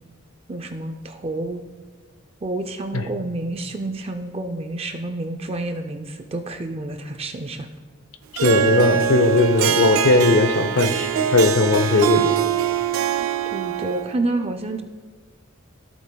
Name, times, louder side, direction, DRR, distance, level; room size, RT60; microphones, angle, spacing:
voice 1, 0.5-1.6 2.4-7.7 13.5-14.8, right 2 dB, 30° right, 6 dB, 0.4 m, -29 dB
voice 2, 8.4-12.3, left 2 dB, 85° left, 9 dB, 0.7 m, -18 dB
Harp, 8.4-14.2, right 8 dB, 85° right, 0.4 m, -23 dB
15.0 x 6.1 x 2.3 m, 1.4 s
head